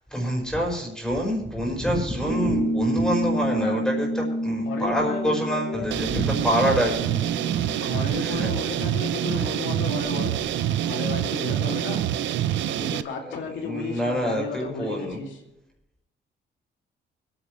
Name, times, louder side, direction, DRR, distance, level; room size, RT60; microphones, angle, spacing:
voice 1, 0.1-6.9 7.4-7.9 8.2-8.5 9.4-9.5 13.2-15.2, equal, 5° left, -1 dB, 5.0 m, -27 dB
sound 1, 2.3-9.2, equal, 50° right, 3.1 m, -29 dB
voice 2, 3.4-3.9 4.6-5.9 7.7-10.4 10.8-12.1 12.8-15.4, left 5 dB, 75° left, 1 dB, 2.7 m, -33 dB
sound 2, 5.9-13.0, right 11 dB, 75° right, 0.6 m, -26 dB
24.5 x 9.9 x 3.2 m, 0.90 s
cardioid pair, 95°, 20 cm